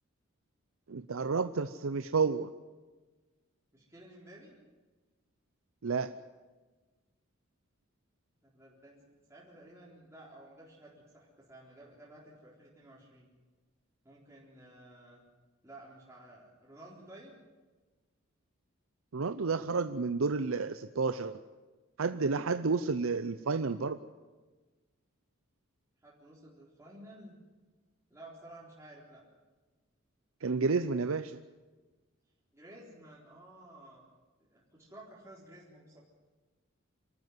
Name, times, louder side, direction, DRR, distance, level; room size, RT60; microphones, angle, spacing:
voice 1, 0.9-2.5 5.8-6.1 19.1-21.4 22.0-24.0 30.4-31.4, right 4 dB, 85° right, 11 dB, 0.7 m, -31 dB
voice 2, 3.7-4.6 8.4-13.3 14.0-15.2 15.6-17.4 26.0-27.4 28.1-29.2 32.5-34.1 34.5-36.0, right 1 dB, 15° right, -6 dB, 4.0 m, -53 dB
25.0 x 13.5 x 9.5 m, 1.3 s
head